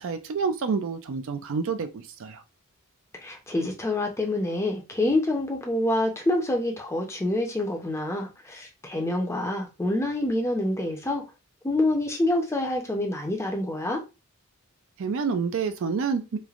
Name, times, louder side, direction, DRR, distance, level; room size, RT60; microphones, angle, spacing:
voice 1, 0.0-2.4 15.0-16.4, right 5 dB, 60° right, 0.4 m, -28 dB
voice 2, 3.2-11.2 11.6-14.0, left 1 dB, 10° left, 0.5 m, -27 dB
3.2 x 2.1 x 2.4 m
head